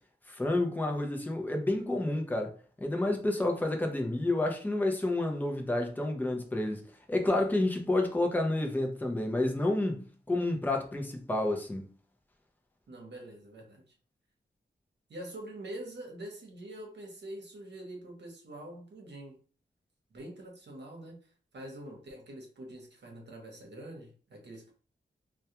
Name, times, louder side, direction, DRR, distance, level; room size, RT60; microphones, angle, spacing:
voice 1, 0.3-2.5 2.8-6.8 7.1-11.8, left 2 dB, 10° left, 0.4 m, -29 dB
voice 2, 12.9-13.9 15.1-19.4 20.1-21.2 21.5-24.7, right 1 dB, 65° right, 0.8 m, -45 dB
2.2 x 2.2 x 2.7 m
wide cardioid pair, 135°, 19 cm